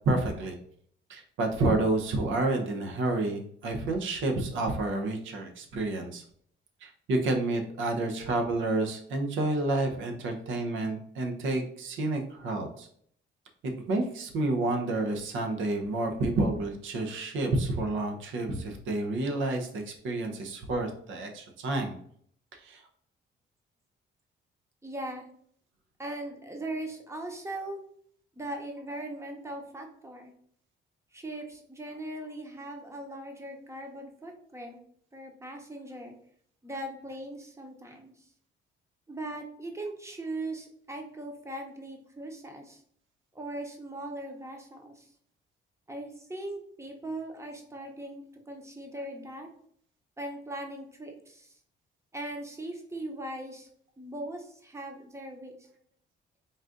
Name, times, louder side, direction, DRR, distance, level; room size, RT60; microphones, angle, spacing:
voice 1, 0.1-0.5 1.1-6.2 6.8-12.9 13.6-21.9 22.5-22.8, right 2 dB, 80° right, 4 dB, 0.8 m, -29 dB
voice 2, 24.8-25.3 26.0-27.8 28.4-30.3 31.1-34.8 35.1-36.1 36.6-38.1 39.1-42.8 43.3-45.1 45.9-49.5 50.2-51.5 52.1-53.7 54.0-55.5, right 1 dB, 15° right, 3 dB, 0.9 m, -39 dB
4.0 x 2.4 x 3.7 m, 0.64 s
cardioid pair, 90°, 20 cm